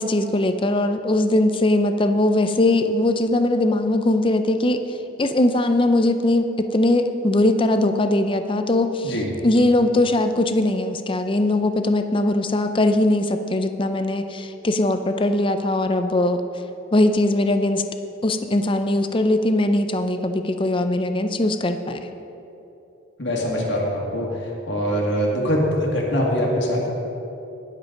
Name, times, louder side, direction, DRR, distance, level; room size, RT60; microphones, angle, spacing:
voice 1, 0.0-4.8 5.2-9.1 9.4-16.4 16.9-17.8 18.2-22.1, left 1 dB, 25° left, 8 dB, 0.5 m, -20 dB
voice 2, 23.2-24.3 24.7-26.9, equal, 65° left, -2 dB, 1.9 m, -23 dB
19.5 x 7.5 x 3.9 m, 2.9 s
head